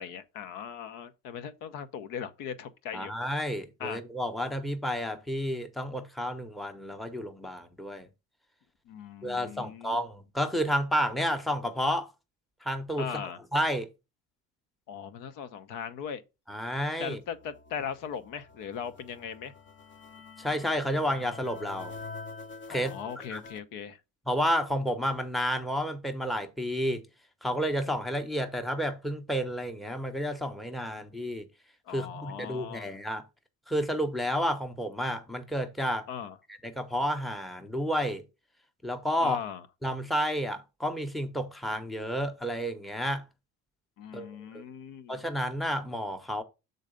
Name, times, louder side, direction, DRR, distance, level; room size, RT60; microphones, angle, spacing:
voice 1, 0.0-3.1 3.8-4.0 8.9-10.0 13.0-13.4 14.9-16.2 17.0-19.5 22.7-24.0 31.9-32.9 36.1-36.4 39.2-39.6 44.0-45.2, left 8 dB, 70° left, 0.9 m, -39 dB
voice 2, 2.9-8.1 9.2-12.1 12.6-13.2 13.5-13.9 16.5-17.2 20.4-22.0 22.7-23.0 23.3-23.4 24.3-27.0 27.4-31.5 31.9-33.2 33.7-36.1 36.6-38.2 38.8-39.4 39.8-43.3 44.1-44.3 44.5-44.6 45.1-46.4, equal, ahead, 0.8 m, -31 dB
sound 1, 17.1-23.6, left 4 dB, 35° left, 0.8 m, -46 dB
6.5 x 4.0 x 5.1 m
cardioid pair, 105°, 33 cm